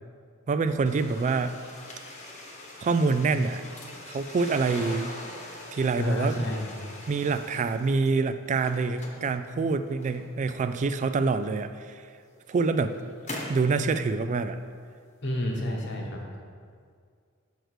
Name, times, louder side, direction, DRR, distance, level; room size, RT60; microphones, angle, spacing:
voice 1, 0.5-1.6 2.8-3.6 4.1-5.1 5.7-6.5 7.1-12.0 12.5-13.0 13.5-14.6, right 4 dB, 35° right, 11 dB, 0.3 m, -26 dB
sound 1, 0.8-8.1 8.5-10.5 11.4-11.5 12.2-13.7, left 2 dB, 35° left, 1.2 m, -42 dB
voice 2, 6.0-6.7 15.2-16.2, left 1 dB, 55° left, -1 dB, 1.2 m, -29 dB
6.4 x 4.6 x 6.4 m, 2.1 s
head